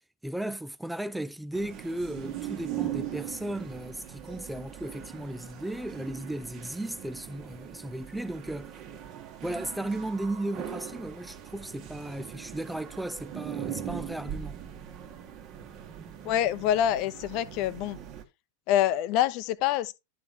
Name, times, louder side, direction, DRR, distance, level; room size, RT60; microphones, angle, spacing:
voice 1, 0.2-8.8 9.4-14.6, right 1 dB, 5° right, 0.3 m, -35 dB
sound 1, 1.5-18.2, right 11 dB, 40° right, 1.5 m, -40 dB
voice 2, 16.2-18.0 18.7-19.9, left 11 dB, 45° left, 0.7 m, -26 dB
12.0 x 4.2 x 3.6 m
figure-of-eight pair, 90°, 0 cm